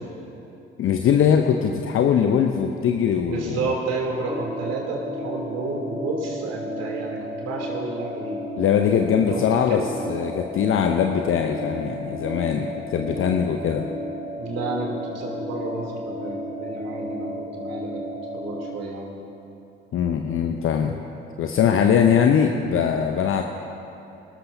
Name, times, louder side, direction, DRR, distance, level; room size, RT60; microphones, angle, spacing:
voice 1, 0.8-3.7 8.6-13.8 19.9-21.0 21.4-23.4, left 8 dB, 45° left, 5 dB, 0.7 m, -21 dB
voice 2, 3.3-8.4 9.1-9.9 14.4-18.0 18.3-19.2, right 3 dB, 55° right, -2 dB, 3.1 m, -31 dB
sound 1, 4.3-18.7, equal, 5° right, 1.7 m, -33 dB
25.0 x 13.5 x 2.7 m, 2.8 s
figure-of-eight pair, 50°, 30 cm